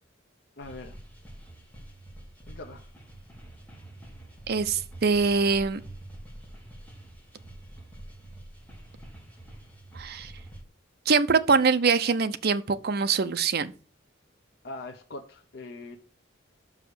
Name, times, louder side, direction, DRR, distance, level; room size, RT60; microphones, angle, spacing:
voice 1, 0.6-1.0 2.5-2.9 14.6-16.0, left 2 dB, 55° left, 0.8 m, -41 dB
sound 1, 0.6-10.6, right 1 dB, 10° left, 1.9 m, -46 dB
voice 2, 4.5-5.8 9.9-10.3 11.1-13.7, right 5 dB, 55° right, 0.6 m, -23 dB
6.2 x 4.9 x 6.7 m
head